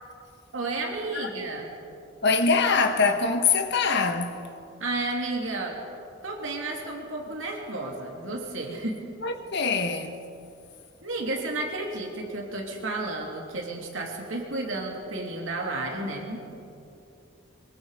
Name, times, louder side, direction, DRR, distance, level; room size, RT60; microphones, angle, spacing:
voice 1, 0.5-1.7 4.8-5.7 6.2-9.0 11.0-16.4, right 2 dB, 70° right, 3.1 m, -32 dB
voice 2, 2.2-4.5 9.2-10.2, left 4 dB, 55° left, 1.5 m, -24 dB
24.0 x 23.5 x 5.1 m
head